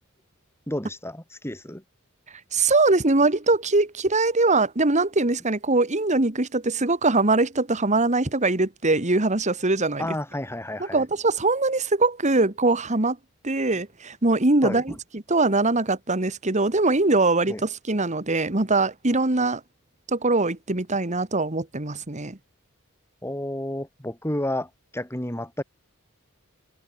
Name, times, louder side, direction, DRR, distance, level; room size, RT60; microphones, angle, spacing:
voice 1, 0.7-1.8 10.0-11.0 14.6-14.8 17.5-17.6 23.2-25.6, left 1 dB, 10° left, 5.6 m, -31 dB
voice 2, 2.5-10.1 10.8-13.2 13.4-19.6 20.1-22.4, right 2 dB, 35° right, 1.9 m, -22 dB
head